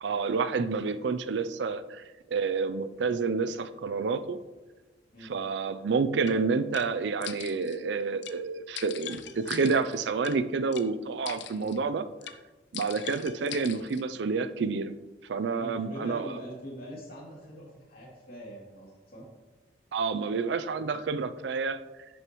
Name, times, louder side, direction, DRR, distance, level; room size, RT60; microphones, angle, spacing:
voice 1, 0.0-4.4 5.2-12.1 12.7-14.9 15.3-16.3 19.9-21.8, right 4 dB, 70° right, 12 dB, 0.4 m, -29 dB
sound 1, 6.3-6.4 6.7-6.9 7.2-7.8 8.2-8.4 8.8-10.4 10.7-10.9 11.3-11.8 12.2-12.4 12.7-14.0, left 10 dB, 70° left, 0.6 m, -41 dB
voice 2, 15.6-19.3, equal, 50° left, -4 dB, 2.8 m, -43 dB
10.5 x 6.5 x 3.1 m, 1.2 s
head